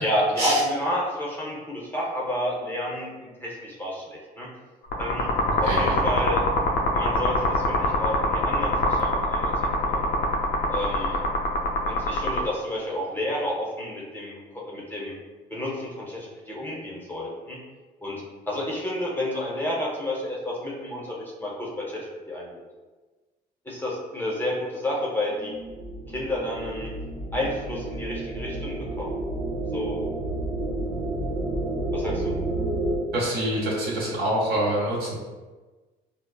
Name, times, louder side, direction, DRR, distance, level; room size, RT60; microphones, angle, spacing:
voice 1, 0.0-4.5 5.0-5.3 5.6-6.4 6.9-9.5 9.8-10.1 10.7-11.2 11.8-15.1 15.5-17.6 18.0-22.5 23.6-25.5 26.1-26.9 27.3-29.1 29.7-30.0 31.9-32.3, left 1 dB, 10° left, -4 dB, 0.7 m, -30 dB
sound 1, 4.9-12.4, left 2 dB, 80° left, 0.6 m, -24 dB
voice 2, 5.6-6.0 33.1-35.2, right 1 dB, 70° right, -5 dB, 1.3 m, -26 dB
sound 2, 25.3-33.0, right 2 dB, 90° right, 0.7 m, -30 dB
4.8 x 2.0 x 2.2 m, 1.3 s
cardioid pair, 110°, 17 cm